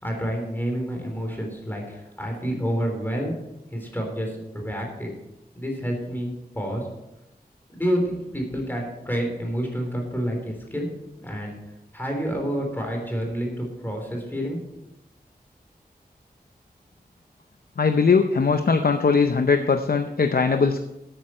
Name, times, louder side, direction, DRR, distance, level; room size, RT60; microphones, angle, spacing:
voice 1, 0.0-3.3 3.7-5.1 5.5-6.9 7.7-10.9 11.2-11.5 11.9-14.6, equal, 10° left, 1 dB, 3.3 m, -28 dB
voice 2, 17.8-20.8, left 5 dB, 65° left, 7 dB, 0.7 m, -20 dB
12.5 x 9.0 x 4.3 m, 0.88 s
wide cardioid pair, 80°, 16 cm